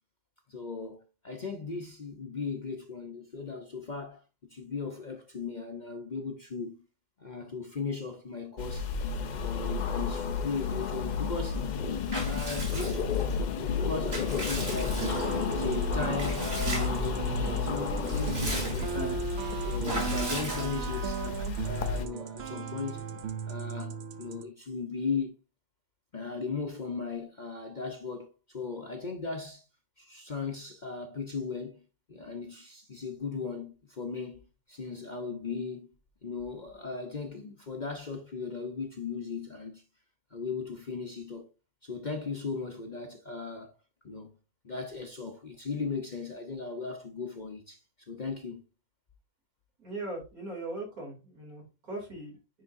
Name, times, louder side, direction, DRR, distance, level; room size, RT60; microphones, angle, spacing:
voice 1, 0.5-4.2 4.5-6.8 7.2-8.9 9.3-11.6 12.2-13.0 13.6-15.1 15.5-19.3 19.6-23.0 23.4-25.3 26.1-29.6 30.0-31.8 32.1-35.9 36.2-39.8 40.3-41.5 41.8-43.7 44.0-44.3 44.6-48.6, left 4 dB, 40° left, 0.8 m, -37 dB
sound 1, 8.6-22.1, left 5 dB, 70° left, 0.4 m, -32 dB
Water / Bathtub (filling or washing) / Liquid, 12.1-13.3 13.8-15.5 16.2-17.1 17.5-17.6 17.9-19.1 19.8-21.1, right 1 dB, 40° right, 2.5 m, -37 dB
sound 2, 15.0-24.4, right 8 dB, 60° right, 0.8 m, -36 dB
voice 2, 49.8-52.6, right 2 dB, 75° right, 3.4 m, -40 dB
9.9 x 3.9 x 2.6 m
omnidirectional pair, 1.5 m